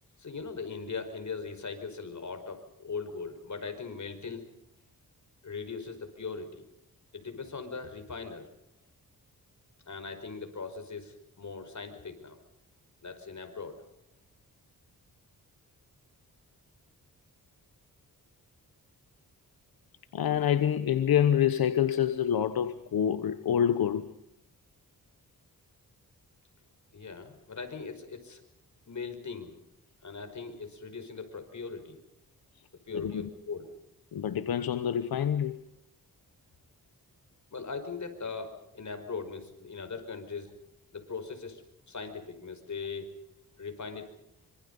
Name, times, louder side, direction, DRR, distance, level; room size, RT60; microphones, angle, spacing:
voice 1, 0.2-4.4 5.4-6.6 7.1-8.5 9.9-12.4 13.0-13.8 26.9-28.4 28.9-29.6 30.0-32.0 32.8-33.7 37.5-40.6 40.9-43.1 43.6-44.2, left 4 dB, 55° left, 5.1 m, -40 dB
voice 2, 20.1-24.0 33.0-33.1 34.1-35.6, left 9 dB, 85° left, 1.1 m, -26 dB
25.5 x 25.0 x 5.5 m
cardioid pair, 75°, 35 cm